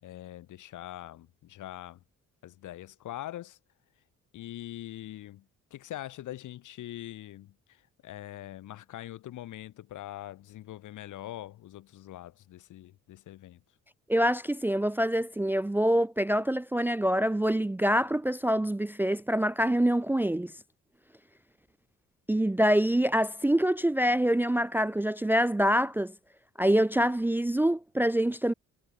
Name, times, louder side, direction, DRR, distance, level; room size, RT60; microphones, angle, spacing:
voice 1, 0.0-2.0 2.4-3.6 4.3-5.4 5.7-13.6, left 13 dB, 80° left, 5.6 m, -43 dB
voice 2, 14.1-20.5 22.3-26.1 26.6-28.5, equal, 5° right, 0.5 m, -25 dB
cardioid pair, 90°, 30 cm